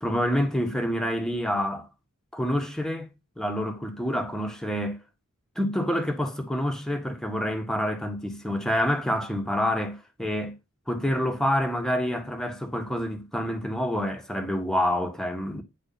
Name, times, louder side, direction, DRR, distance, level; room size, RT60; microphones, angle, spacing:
voice 1, 0.0-1.9 2.3-3.1 3.4-5.0 5.5-10.5 10.9-15.6, equal, 5° left, 1.7 m, -27 dB
10.0 x 4.8 x 6.0 m
head